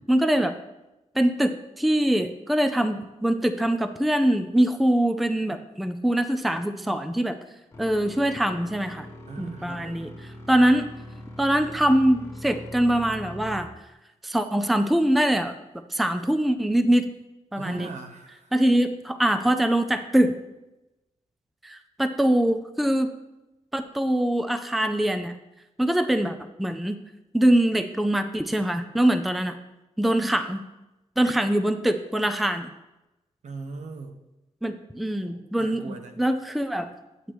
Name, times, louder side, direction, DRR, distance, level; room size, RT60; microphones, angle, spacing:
voice 1, 0.1-0.5 1.2-7.4 7.8-9.1 9.4-10.1 10.5-10.9 11.4-13.7 14.2-15.5 15.9-17.1 17.5-17.9 18.5-20.4 21.6-23.1 23.7-25.4 25.8-27.0 27.3-29.6 30.0-30.6 31.2-32.7 34.6-36.9, right 1 dB, ahead, 8 dB, 0.4 m, -23 dB
sound 1, 7.7-13.6, left 1 dB, 25° left, 1.3 m, -42 dB
voice 2, 9.3-10.1 17.6-18.5 33.4-34.2 35.2-36.2, right 4 dB, 75° right, 6 dB, 1.0 m, -40 dB
10.5 x 8.2 x 3.0 m, 0.98 s
wide cardioid pair, 180°, 12 cm